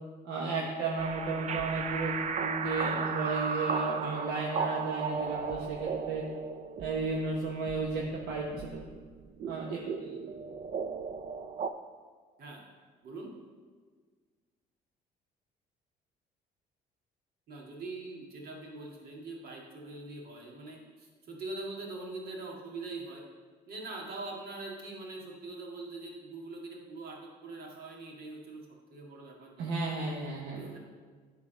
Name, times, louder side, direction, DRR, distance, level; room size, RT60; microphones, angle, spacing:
voice 1, 0.2-6.2 6.8-8.8 9.5-9.8 29.6-30.8, right 3 dB, 80° right, -2 dB, 1.1 m, -33 dB
sound 1, 1.0-11.7, right 5 dB, 45° right, 0.5 m, -36 dB
voice 2, 17.5-23.2 23.7-29.8 30.5-30.8, right 2 dB, 65° right, -1 dB, 2.0 m, -43 dB
9.7 x 4.0 x 6.3 m, 1.5 s
cardioid pair, 110°, 17 cm